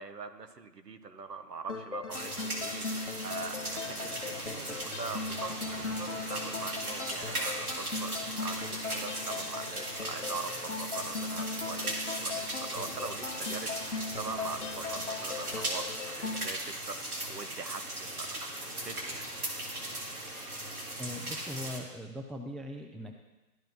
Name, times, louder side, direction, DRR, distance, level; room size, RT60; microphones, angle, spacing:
voice 1, 0.0-11.9 12.2-15.9 16.2-19.3, right 4 dB, 80° right, 8 dB, 1.0 m, -42 dB
sound 1, 1.7-16.5, left 4 dB, 50° left, 0.6 m, -39 dB
sound 2, 2.1-21.8, right 1 dB, 65° right, 1.9 m, -38 dB
voice 2, 21.0-23.1, left 1 dB, ahead, 4 dB, 0.4 m, -40 dB
12.5 x 4.3 x 2.9 m, 1.1 s
figure-of-eight pair, 170°, 48 cm